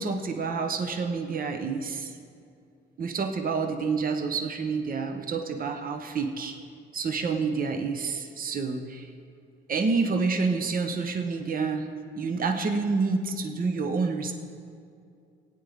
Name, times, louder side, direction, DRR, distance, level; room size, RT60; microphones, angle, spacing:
voice 1, 0.0-2.1 3.0-6.5 6.9-9.1 9.7-11.9 12.2-14.3, right 4 dB, 45° right, 5 dB, 1.0 m, -28 dB
17.5 x 9.3 x 3.6 m, 2.4 s
cardioid pair, 90°, 20 cm